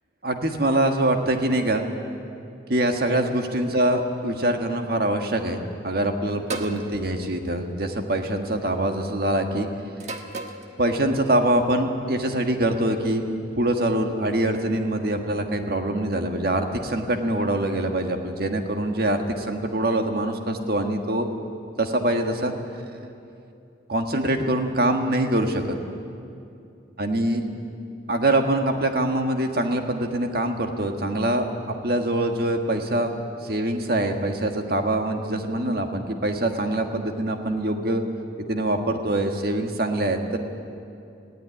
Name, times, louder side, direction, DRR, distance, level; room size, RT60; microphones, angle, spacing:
voice 1, 0.2-1.8 2.7-9.7 10.8-13.2 13.6-21.3 21.8-22.5 23.9-25.7 27.0-27.5 28.1-31.5 31.8-38.0 38.4-40.4, right 1 dB, 50° right, 5 dB, 1.7 m, -24 dB
sound 1, 6.5-6.8 8.0-8.4 10.0-10.7, right 3 dB, 35° right, 1.4 m, -34 dB
19.5 x 16.0 x 9.9 m, 2.6 s
head